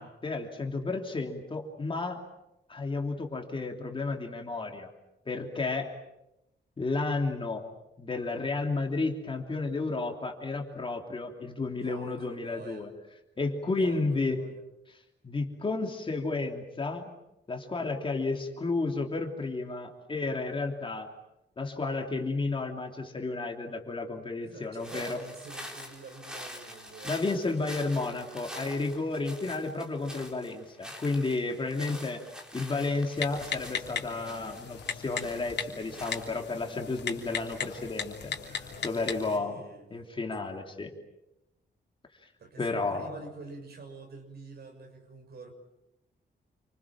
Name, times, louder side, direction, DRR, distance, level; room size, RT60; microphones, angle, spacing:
voice 1, 0.0-2.2 2.7-4.9 5.3-5.9 6.8-7.7 8.0-12.9 13.4-14.4 15.2-17.1 17.5-21.1 21.6-25.2 27.0-32.2 32.5-38.3 38.8-39.6 39.9-40.9 42.6-43.1, left 3 dB, 30° left, 3 dB, 3.2 m, -32 dB
voice 2, 11.8-12.9 13.8-14.6 24.4-27.2 38.4-39.9 42.4-45.5, right 3 dB, 60° right, 4 dB, 6.5 m, -47 dB
sound 1, 24.8-36.7, equal, 5° right, 3.9 m, -46 dB
Typing, 33.2-39.4, left 6 dB, 70° left, 3.2 m, -37 dB
29.0 x 26.0 x 7.4 m, 0.91 s
wide cardioid pair, 180°, 18 cm